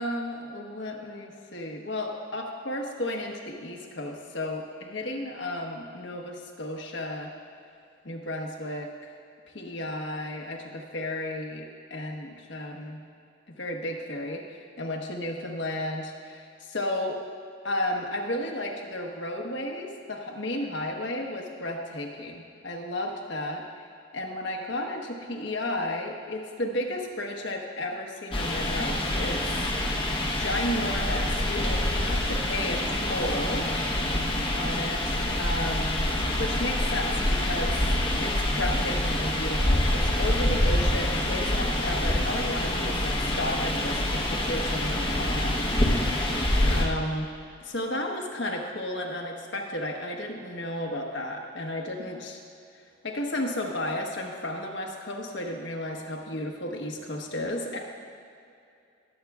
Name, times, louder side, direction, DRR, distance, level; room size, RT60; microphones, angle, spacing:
voice 1, 0.0-7.3 8.0-8.9 9.5-13.0 13.6-17.2 17.6-23.9 24.1-29.4 30.4-33.7 34.5-36.0 36.3-37.8 38.2-46.4 46.7-47.3 47.6-52.4 53.0-57.8, left 1 dB, 65° left, 1 dB, 1.2 m, -33 dB
sound 1, 28.3-46.8, left 1 dB, 25° left, 1.0 m, -26 dB
20.5 x 8.4 x 2.4 m, 2.5 s
head